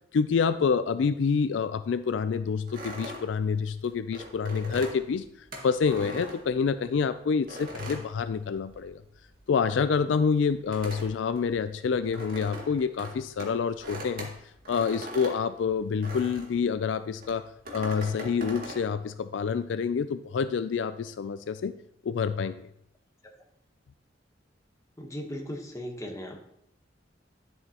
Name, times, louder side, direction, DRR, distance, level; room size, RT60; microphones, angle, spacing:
voice 1, 0.1-5.2 5.6-9.0 9.5-14.3 14.7-17.4 17.7-21.7 22.0-22.6, left 5 dB, 75° left, 12 dB, 0.4 m, -27 dB
sound 1, 2.7-7.0 7.5-9.0 9.2-16.6 17.2-18.9, equal, 50° right, 1.8 m, -41 dB
voice 2, 25.0-26.5, equal, 15° left, 2 dB, 1.2 m, -37 dB
11.0 x 6.9 x 2.9 m, 0.74 s
head